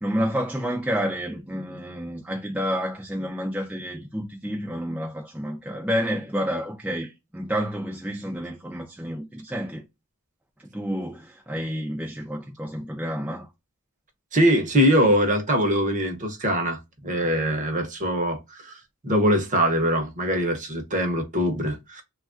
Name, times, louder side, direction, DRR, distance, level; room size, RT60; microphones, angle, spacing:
voice 1, 0.0-9.8 10.7-13.5, equal, 5° right, 0.4 m, -29 dB
voice 2, 14.3-18.7 19.0-22.0, equal, 35° right, 0.7 m, -22 dB
3.3 x 2.3 x 2.4 m
head